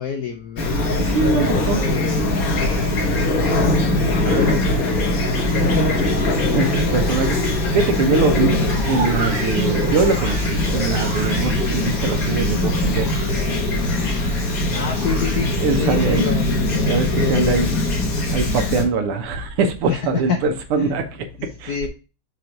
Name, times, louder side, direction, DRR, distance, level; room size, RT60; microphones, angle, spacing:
voice 1, 0.0-0.8 1.2-5.1 5.5-6.6 14.7-16.5 17.2-17.6 19.9-20.0 20.3-20.4 20.8-20.9 21.7-21.9, left 6 dB, 70° left, 0.9 m, -28 dB
Fowl / Chirp tweet, 0.6-18.8, left 1 dB, 45° left, 1.6 m, -21 dB
voice 2, 0.8-1.9 4.2-4.6 6.5-8.6 8.9-13.1 15.6-16.3 16.9-17.8 18.3-21.8, right 4 dB, 85° right, 1.9 m, -23 dB
sound 1, 8.7-17.0, right 5 dB, 65° right, 1.7 m, -34 dB
6.5 x 3.1 x 5.8 m
omnidirectional pair, 2.4 m